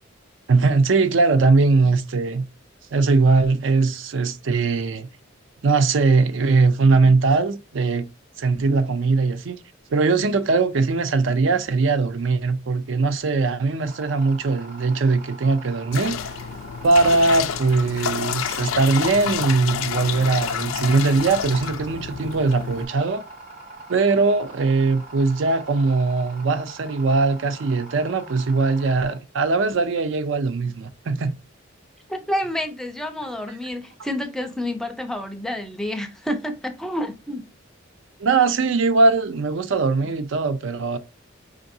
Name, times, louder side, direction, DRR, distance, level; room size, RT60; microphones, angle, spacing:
voice 1, 0.5-2.4 2.9-5.1 5.6-8.1 8.4-9.6 9.9-16.2 16.8-23.2 23.9-31.3 38.2-41.0, right 3 dB, 70° right, 0.4 m, -20 dB
sound 1, 13.8-29.1, right 2 dB, 35° right, 1.1 m, -43 dB
Bathroom Pee, 15.9-22.9, left 8 dB, 85° left, 0.4 m, -29 dB
voice 2, 32.1-37.5, left 1 dB, ahead, 0.4 m, -29 dB
4.5 x 2.5 x 2.6 m
head